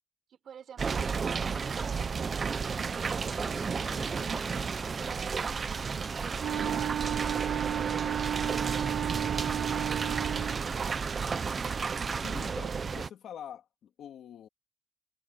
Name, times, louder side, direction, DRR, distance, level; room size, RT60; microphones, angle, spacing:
voice 1, 0.3-3.7 5.0-5.4 6.4-7.9 8.2-11.4, right 8 dB, 60° right, 4.9 m, -48 dB
sound 1, 0.8-13.1, right 5 dB, 35° right, 1.0 m, -32 dB
Bass guitar, 3.4-7.2, left 1 dB, 10° left, 1.6 m, -51 dB
Wind instrument woodwind instrument, 6.4-10.6, right 11 dB, 75° right, 0.4 m, -33 dB
voice 2, 12.2-14.5, left 9 dB, 85° left, 2.4 m, -46 dB
wide cardioid pair, 160°, 0 cm